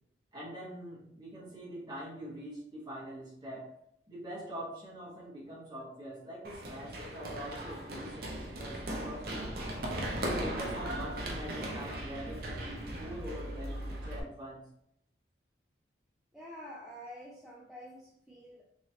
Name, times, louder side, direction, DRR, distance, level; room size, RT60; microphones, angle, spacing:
voice 1, 0.3-3.7 4.1-9.5 10.1-14.6, right 1 dB, 20° right, -8 dB, 1.3 m, -44 dB
Run, 6.4-14.2, right 1 dB, 50° right, 0.5 m, -38 dB
voice 2, 16.3-18.6, equal, ahead, -5 dB, 0.4 m, -48 dB
3.1 x 2.9 x 2.8 m, 0.75 s
head